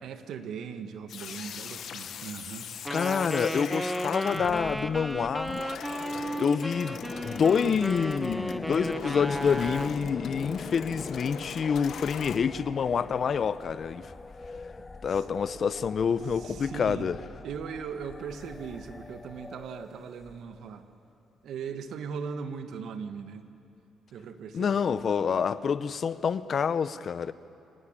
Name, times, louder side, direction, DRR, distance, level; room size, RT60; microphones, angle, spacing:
voice 1, 0.0-3.0 14.8-15.2 16.3-17.1 17.4-20.9 21.4-23.5 24.1-24.8, right 6 dB, 75° right, 8 dB, 1.5 m, -39 dB
sound 1, 1.1-12.4, left 7 dB, 65° left, 1.3 m, -40 dB
Wind instrument woodwind instrument, 2.8-10.0, right 1 dB, 5° right, 1.0 m, -34 dB
voice 2, 2.9-5.6 6.4-14.1 15.0-17.2 24.5-27.3, left 6 dB, 50° left, 15 dB, 0.8 m, -27 dB
sound 2, 6.6-20.8, left 3 dB, 20° left, 0.7 m, -44 dB
26.0 x 18.5 x 8.9 m, 2.6 s
cardioid pair, 90°, 0 cm